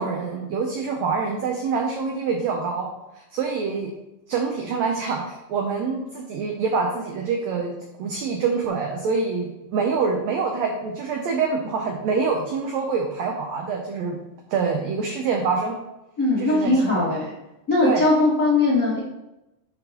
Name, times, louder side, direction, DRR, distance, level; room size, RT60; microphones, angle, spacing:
voice 1, 0.0-2.9 3.3-3.9 4.3-14.2 14.5-15.8 16.4-17.1 17.8-18.0, right 5 dB, 85° right, 2 dB, 1.5 m, -25 dB
voice 2, 16.2-17.3 17.7-19.0, left 2 dB, 65° left, -7 dB, 0.8 m, -20 dB
10.5 x 3.9 x 2.9 m, 0.94 s
omnidirectional pair, 4.0 m